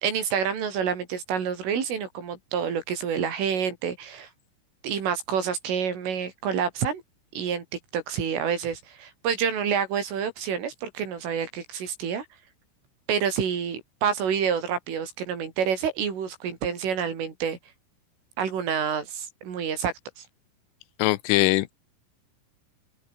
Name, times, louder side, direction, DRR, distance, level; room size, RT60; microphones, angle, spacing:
voice 1, 0.0-4.3 4.8-7.0 7.3-7.6 7.9-12.3 13.1-17.6 18.4-20.3, right 7 dB, 70° right, 7.0 m, -28 dB
voice 2, 21.0-21.7, left 18 dB, 80° left, 3.3 m, -21 dB
open air
omnidirectional pair, 5.9 m